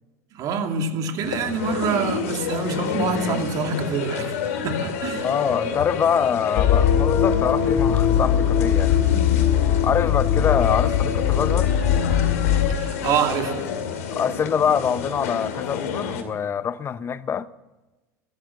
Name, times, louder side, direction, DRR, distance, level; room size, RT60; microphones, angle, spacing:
voice 1, 0.3-5.3 9.1-9.3 12.7-13.6, right 5 dB, 50° right, 2.4 m, -26 dB
sound 1, 1.2-16.2, left 6 dB, 80° left, 2.3 m, -29 dB
voice 2, 5.2-9.0 9.8-11.7 14.1-17.5, left 7 dB, 30° left, 0.7 m, -24 dB
sound 2, 6.6-12.8, left 9 dB, 60° left, 1.3 m, -20 dB
14.0 x 13.0 x 7.5 m
hypercardioid pair, 95°, 8 cm